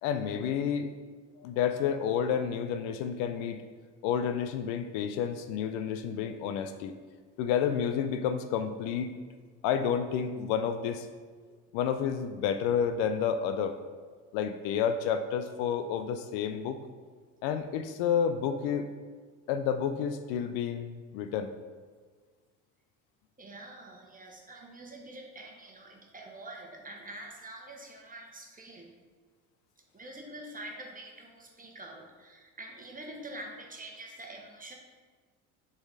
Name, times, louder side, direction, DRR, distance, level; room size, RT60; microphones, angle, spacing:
voice 1, 0.0-0.9 1.4-3.6 4.0-6.9 7.4-9.1 9.6-11.1 11.7-13.8 14.3-16.8 17.4-18.9 19.5-21.5, left 8 dB, 70° left, 9 dB, 0.6 m, -30 dB
voice 2, 23.4-28.9 29.9-34.7, right 1 dB, 20° right, 1 dB, 1.3 m, -46 dB
6.8 x 4.1 x 4.1 m, 1.5 s
hypercardioid pair, 65°, 43 cm